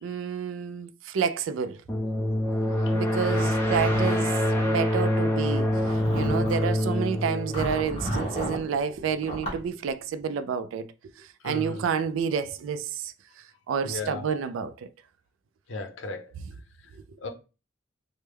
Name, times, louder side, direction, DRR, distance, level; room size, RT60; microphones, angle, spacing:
voice 1, 0.0-1.8 2.9-4.3 4.6-5.7 6.1-10.9 11.2-13.1 13.7-14.9, right 7 dB, 85° right, 0.3 m, -29 dB
sound 1, 1.9-8.5, left 1 dB, 15° left, 0.5 m, -26 dB
Zipper (clothing), 3.1-4.7 5.5-6.7 7.5-8.6 9.2-9.6, equal, 35° left, 1.2 m, -33 dB
voice 2, 3.9-4.3 11.4-11.8 13.8-14.3 15.7-16.3 17.2-17.3, left 2 dB, 80° left, 0.6 m, -35 dB
3.2 x 2.1 x 3.3 m
head